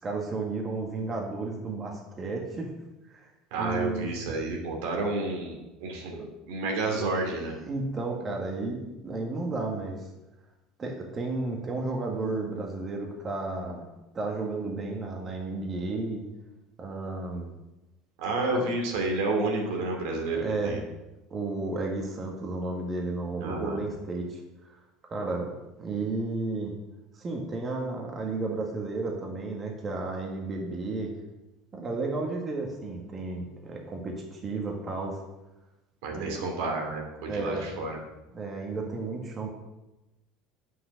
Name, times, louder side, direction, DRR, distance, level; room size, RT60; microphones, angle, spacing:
voice 1, 0.0-2.7 3.1-3.3 3.6-4.1 6.1-6.3 7.7-10.1 10.8-13.9 14.1-16.2 16.8-17.5 18.5-18.7 20.3-20.7 21.3-24.8 25.1-25.5 25.8-26.7 27.1-31.1 31.7-35.2 36.1-36.5 37.3-37.7 38.3-39.5, right 3 dB, 30° right, 0 dB, 1.6 m, -33 dB
voice 2, 3.5-7.5 18.2-20.8 23.4-23.8 36.0-38.0, right 2 dB, 80° right, 1 dB, 2.5 m, -30 dB
7.6 x 6.6 x 6.3 m, 1.0 s
supercardioid pair, 120°, 0 cm